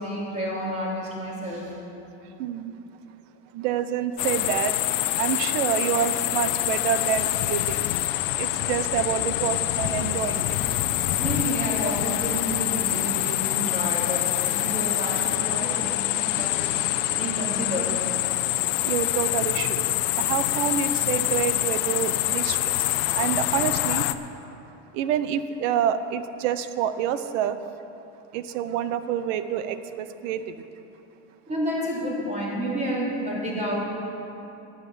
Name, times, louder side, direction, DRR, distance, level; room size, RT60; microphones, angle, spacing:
voice 1, 0.0-1.7 11.2-16.7 17.1-17.9 31.5-33.9, equal, 20° right, -5 dB, 3.6 m, -30 dB
voice 2, 2.4-2.7 3.5-4.7 5.2-7.9 8.4-10.5 18.8-19.8 20.2-22.8 23.2-24.0 24.9-27.6 28.3-30.5, right 9 dB, 75° right, 12 dB, 0.9 m, -27 dB
sound 1, 4.2-24.1, left 15 dB, 70° left, 0.7 m, -25 dB
12.0 x 7.0 x 9.7 m, 2.9 s
supercardioid pair, 145°, 37 cm